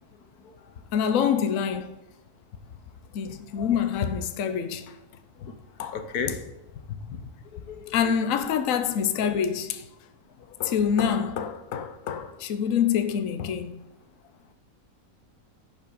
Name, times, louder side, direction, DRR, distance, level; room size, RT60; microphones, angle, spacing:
voice 1, 0.9-1.9 3.1-5.0 5.8-6.0 7.9-9.8 10.6-13.9, left 8 dB, 65° left, 1.1 m, -26 dB
voice 2, 5.9-6.4 7.1-7.9, left 6 dB, 85° left, 1.5 m, -34 dB
11.0 x 5.7 x 5.2 m
omnidirectional pair, 1.6 m